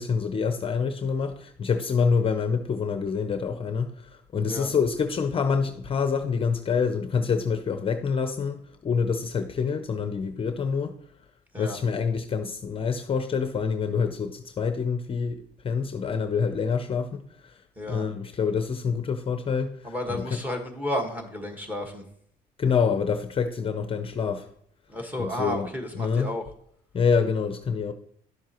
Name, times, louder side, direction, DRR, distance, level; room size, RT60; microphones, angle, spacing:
voice 1, 0.0-11.0 11.6-17.6 17.9-20.4 22.6-24.5 25.2-25.7 25.9-26.3 26.9-27.9, left 5 dB, 35° left, 0.6 m, -26 dB
voice 2, 19.8-22.0 24.9-26.4, left 1 dB, 10° right, 1.6 m, -32 dB
11.0 x 7.3 x 3.0 m
cardioid pair, 110°, 17 cm